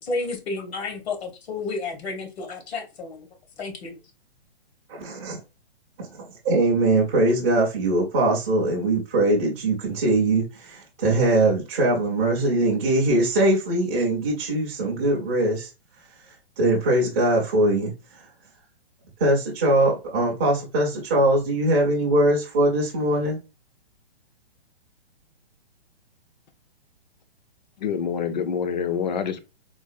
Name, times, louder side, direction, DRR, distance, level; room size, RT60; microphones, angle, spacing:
voice 1, 0.0-3.3 3.6-4.0, left 3 dB, 75° left, 1.2 m, -31 dB
voice 2, 4.9-5.4 6.0-15.7 16.6-17.9 19.2-23.4, right 1 dB, 15° right, 0.4 m, -21 dB
voice 3, 27.8-29.4, left 7 dB, 45° left, 0.4 m, -26 dB
3.8 x 2.3 x 2.4 m
hypercardioid pair, 165°, 32 cm